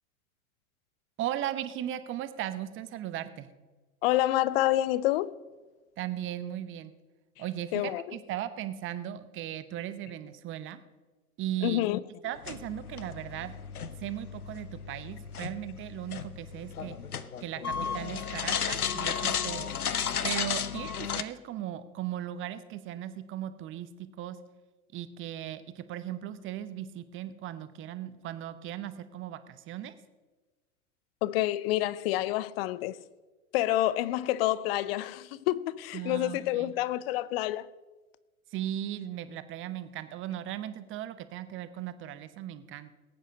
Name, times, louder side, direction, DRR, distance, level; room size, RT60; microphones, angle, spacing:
voice 1, 1.2-3.5 6.0-6.9 7.4-10.8 11.4-11.8 12.2-13.6 14.0-17.0 17.4-19.7 20.2-24.4 24.9-29.9 35.9-36.7 38.5-42.9, right 12 dB, 30° right, 0.9 m, -37 dB
voice 2, 4.0-5.3 7.7-8.0 11.6-12.0 31.2-33.0 33.5-37.7, left 15 dB, 45° left, 0.6 m, -28 dB
sound 1, 12.4-21.2, left 7 dB, 85° left, 0.8 m, -34 dB
19.5 x 8.9 x 5.3 m
figure-of-eight pair, 100°, 43 cm